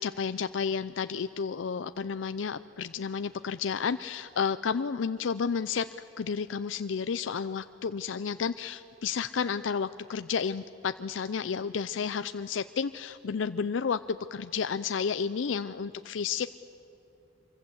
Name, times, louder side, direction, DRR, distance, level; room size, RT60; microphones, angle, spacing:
voice 1, 0.0-5.8 6.2-16.5, left 6 dB, 85° left, 11 dB, 0.5 m, -31 dB
26.0 x 23.5 x 7.9 m, 2.8 s
head